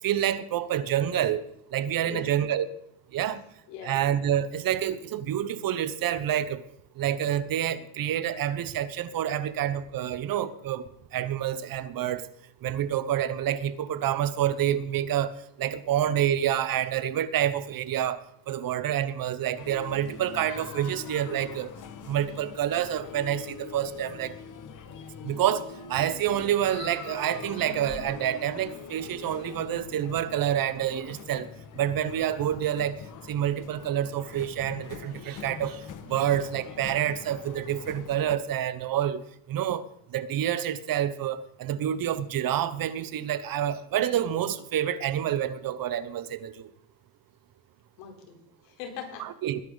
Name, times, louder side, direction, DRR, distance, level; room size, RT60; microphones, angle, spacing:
voice 1, 0.0-1.4 1.7-2.6 3.1-3.4 3.9-6.6 7.0-12.3 12.6-21.7 22.1-24.4 25.2-31.5 31.7-33.0 33.3-39.2 39.5-39.8 40.1-46.7 49.2-49.6, right 10 dB, 45° right, 1.1 m, -28 dB
voice 2, 2.0-2.4 3.7-4.0 9.4-9.5 48.0-49.3, left 7 dB, 90° left, 4.1 m, -41 dB
sound 1, 19.5-38.3, left 6 dB, 40° left, 1.7 m, -43 dB
21.0 x 10.5 x 4.0 m
cardioid pair, 115°, 47 cm